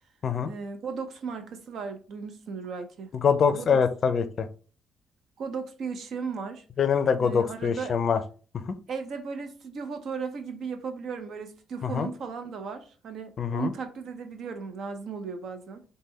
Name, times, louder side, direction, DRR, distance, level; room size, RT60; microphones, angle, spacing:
voice 1, 0.4-3.1 3.5-3.8 5.4-6.6 7.2-8.0 8.9-15.8, right 5 dB, 70° right, 0.6 m, -36 dB
voice 2, 3.2-4.5 6.8-8.2 8.7-8.8 11.8-12.1 13.4-13.7, left 6 dB, 55° left, 0.4 m, -24 dB
3.4 x 2.2 x 3.1 m
cardioid pair, 80°, 0 cm